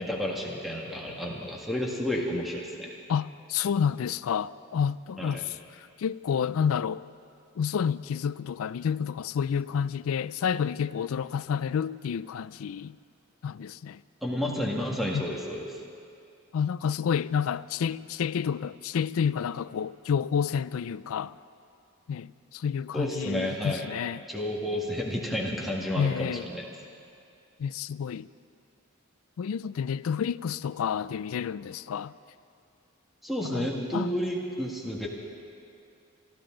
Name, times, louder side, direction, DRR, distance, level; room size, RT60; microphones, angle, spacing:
voice 1, 0.0-2.9 5.2-5.4 14.2-15.7 22.9-23.8 24.3-26.7 33.2-35.1, equal, ahead, 1.8 m, -31 dB
voice 2, 3.1-5.6 6.0-7.0 7.6-13.0 13.4-14.0 15.1-15.3 16.5-21.3 22.1-24.2 26.0-26.5 27.6-28.3 29.4-32.1 33.4-34.1, left 7 dB, 75° left, 0.4 m, -29 dB
25.0 x 13.0 x 3.8 m
head